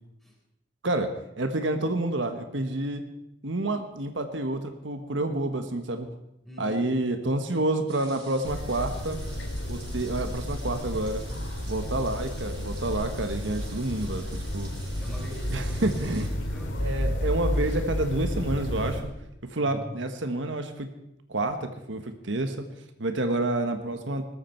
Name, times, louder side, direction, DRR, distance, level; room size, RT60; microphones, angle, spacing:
voice 1, 0.8-3.0 3.4-6.1 6.6-9.2 9.7-11.2 11.7-14.7 15.5-16.3 16.8-19.1 19.5-20.9 21.3-22.7 23.0-24.3, right 2 dB, 75° right, 7 dB, 1.3 m, -29 dB
voice 2, 6.4-6.8 15.0-16.8 19.5-19.9, equal, ahead, -2 dB, 4.1 m, -43 dB
sound 1, 7.9-16.3, right 3 dB, 30° right, 7.1 m, -49 dB
sound 2, 8.4-19.0, equal, 75° left, 2.2 m, -32 dB
20.0 x 14.0 x 4.5 m, 0.84 s
head